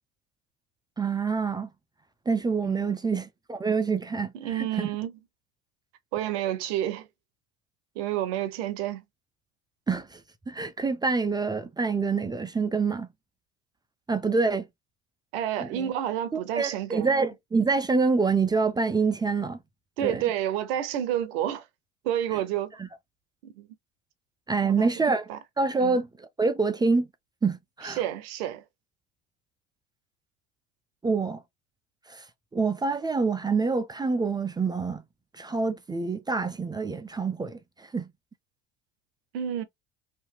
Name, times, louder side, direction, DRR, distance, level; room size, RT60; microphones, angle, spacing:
voice 1, 1.0-1.7 2.3-4.9 9.9-10.2 10.5-13.1 14.1-14.7 15.6-15.9 16.3-19.6 20.0-20.2 22.8-22.9 24.5-25.3 25.6-27.1 27.4-28.0 31.0-31.4 32.1-32.2 32.5-35.0 35.3-38.1, right 4 dB, 15° right, 0.4 m, -26 dB
voice 2, 2.6-3.0 4.3-5.1 6.1-7.1 8.0-9.0 15.3-17.1 20.0-21.7 22.0-22.8 23.4-23.7 24.6-25.4 25.8-26.0 27.8-28.6 39.3-39.6, right 11 dB, 70° right, 0.7 m, -30 dB
2.8 x 2.5 x 2.2 m
hypercardioid pair, 70°, 31 cm